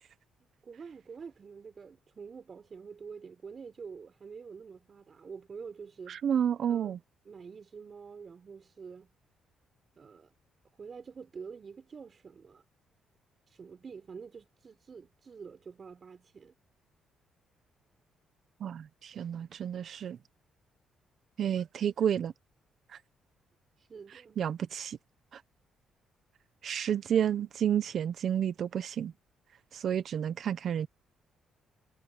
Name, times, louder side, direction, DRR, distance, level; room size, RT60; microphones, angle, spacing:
voice 1, 0.4-6.2 6.7-7.0 7.3-9.1 10.0-10.3 10.8-12.6 13.5-16.5 23.8-24.4, right 5 dB, 40° right, 6.4 m, -47 dB
voice 2, 6.1-7.0 18.6-20.2 21.4-22.3 22.9-23.0 24.4-25.0 25.3-25.4 26.6-29.1 29.7-30.9, right 9 dB, 60° right, 1.0 m, -30 dB
cardioid pair, 90°, 0 cm